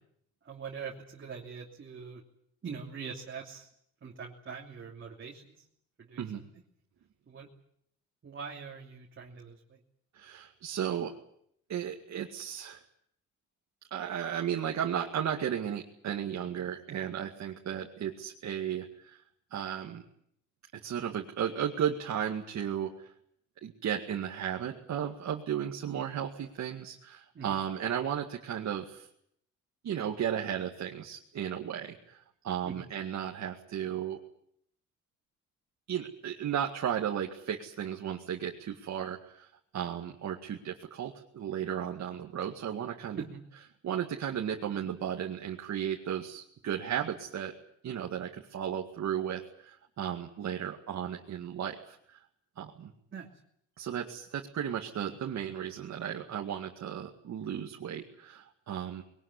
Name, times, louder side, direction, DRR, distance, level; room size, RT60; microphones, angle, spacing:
voice 1, 0.4-2.2 2.6-3.7 4.0-5.6 6.0-6.4 7.3-7.5 8.2-9.8 27.3-27.6 32.6-32.9 43.1-43.4 53.1-53.3, right 6 dB, 40° right, -1 dB, 2.9 m, -43 dB
voice 2, 10.1-11.1 11.7-12.8 13.9-19.2 19.5-20.0 20.8-23.1 23.6-29.1 29.8-34.2 35.9-43.2 43.8-47.5 47.8-52.2 52.6-52.9 53.8-59.0, right 9 dB, 65° right, 1 dB, 2.1 m, -35 dB
21.5 x 18.5 x 9.7 m, 0.71 s
cardioid pair, 90°, 30 cm